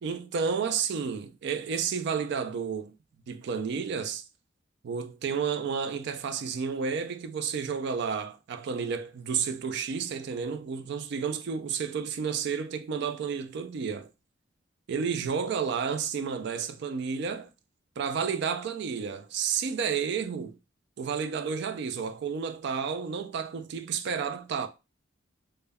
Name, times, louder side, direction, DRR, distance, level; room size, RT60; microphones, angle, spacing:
voice 1, 0.0-2.9 3.3-4.2 4.8-14.1 14.9-17.5 18.0-20.6 21.0-24.7, right 6 dB, 60° right, 0.3 m, -31 dB
2.1 x 2.1 x 3.3 m
head